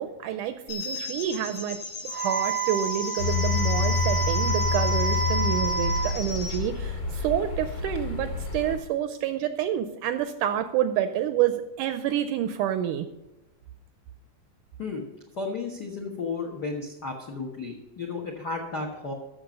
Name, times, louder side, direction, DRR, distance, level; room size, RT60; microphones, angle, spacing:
voice 1, 0.0-13.1, right 10 dB, 80° right, 10 dB, 1.9 m, -28 dB
sound 1, 0.7-6.6, left 3 dB, 85° left, 4.4 m, -35 dB
Wind instrument woodwind instrument, 2.1-6.1, right 5 dB, 65° right, 1.3 m, -29 dB
sound 2, 3.2-8.8, left 5 dB, 40° left, 1.9 m, -28 dB
voice 2, 15.3-19.1, left 4 dB, 65° left, 2 dB, 1.0 m, -33 dB
13.5 x 6.8 x 5.2 m, 0.98 s
omnidirectional pair, 4.1 m